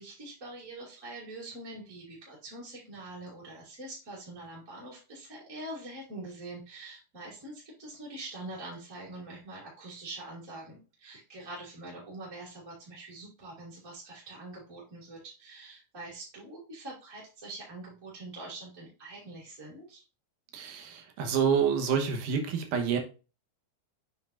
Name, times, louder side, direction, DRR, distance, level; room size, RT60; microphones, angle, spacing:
voice 1, 0.0-20.0, right 2 dB, 30° right, -6 dB, 2.0 m, -44 dB
voice 2, 20.5-23.0, right 7 dB, 75° right, 5 dB, 2.5 m, -28 dB
7.0 x 5.8 x 2.5 m, 0.33 s
omnidirectional pair, 3.7 m